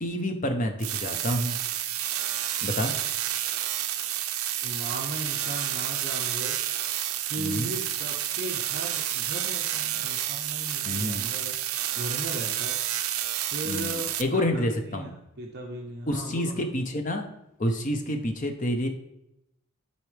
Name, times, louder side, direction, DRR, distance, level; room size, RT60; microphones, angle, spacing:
voice 1, 0.0-1.6 2.6-2.9 7.4-7.7 10.8-11.3 13.7-15.1 16.1-17.3 17.6-18.9, left 1 dB, 35° left, 5 dB, 0.8 m, -28 dB
sound 1, 0.8-14.2, right 12 dB, 75° right, 0.5 m, -30 dB
voice 2, 4.6-6.6 7.2-11.6 11.9-12.8 13.5-16.6, right 1 dB, 50° right, -1 dB, 0.9 m, -37 dB
12.5 x 4.2 x 3.4 m, 0.85 s
head